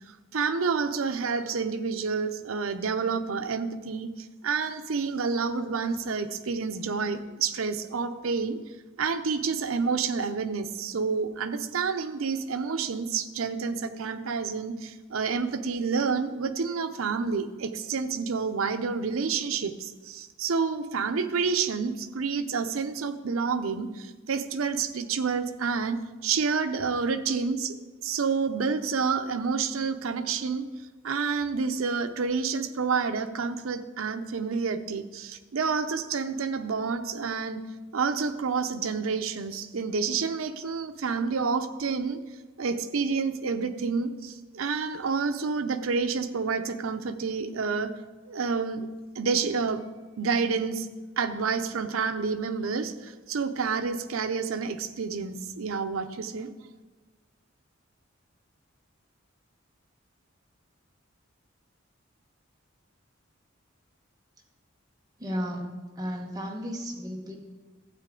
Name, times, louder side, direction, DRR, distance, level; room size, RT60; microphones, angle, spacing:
voice 1, 0.3-8.6 9.0-30.7 31.0-37.6 37.9-42.2 42.6-47.9 48.3-48.9 49.2-49.8 50.2-50.9 51.2-56.5, right 5 dB, 85° right, 9 dB, 0.6 m, -29 dB
voice 2, 65.2-67.3, equal, 20° right, 0 dB, 1.2 m, -34 dB
12.5 x 8.3 x 3.7 m, 1.3 s
head